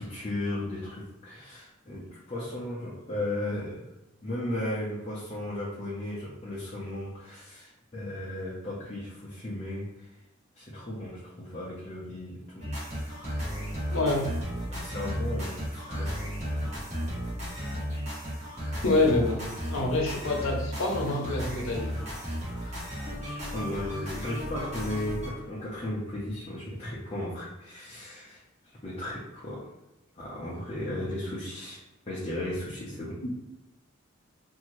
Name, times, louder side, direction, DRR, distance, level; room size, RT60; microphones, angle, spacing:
voice 1, 0.0-3.8 4.2-10.1 10.6-12.7 14.7-16.1 22.4-28.4 28.8-29.7 30.2-31.8 32.1-33.2, left 1 dB, 30° left, -7 dB, 0.6 m, -35 dB
sound 1, 12.6-25.3, equal, 35° right, 1.1 m, -34 dB
voice 2, 13.9-14.3 18.8-21.9 33.2-33.3, left 2 dB, 85° left, 0 dB, 0.7 m, -26 dB
2.7 x 2.6 x 3.0 m, 0.95 s
head